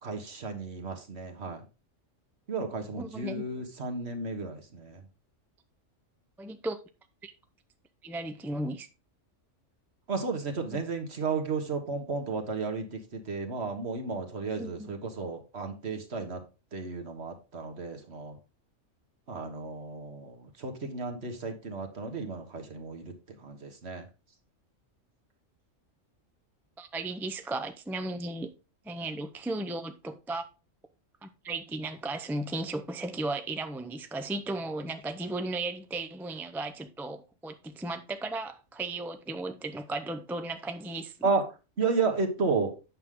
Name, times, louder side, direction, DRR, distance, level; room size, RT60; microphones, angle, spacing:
voice 1, 0.0-1.6 2.5-5.0 10.1-16.4 16.7-18.4 19.3-23.1 23.4-24.0 41.2-41.4 41.8-42.7, right 4 dB, 55° right, 1.6 m, -33 dB
voice 2, 2.9-3.4 6.4-6.8 7.2-7.3 8.0-8.9 10.7-10.8 14.4-14.9 26.8-28.5 28.8-30.4 31.2-41.3, right 2 dB, 5° right, 0.3 m, -35 dB
8.8 x 6.3 x 3.7 m
omnidirectional pair, 1.3 m